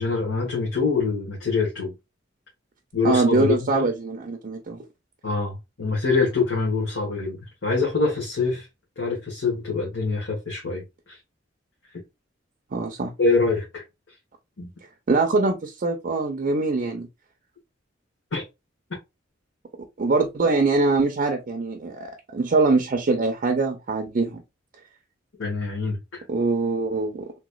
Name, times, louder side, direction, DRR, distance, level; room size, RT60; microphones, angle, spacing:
voice 1, 0.0-1.9 2.9-3.9 5.2-8.7 9.0-10.8 11.1-11.2 13.2-13.8 14.6-14.7 18.3-18.4 25.4-26.2, left 4 dB, 80° left, 1.3 m, -25 dB
voice 2, 3.0-4.8 12.7-13.1 15.1-17.1 20.0-24.4 26.3-27.3, right 3 dB, 45° right, 0.5 m, -23 dB
3.3 x 3.0 x 2.3 m
head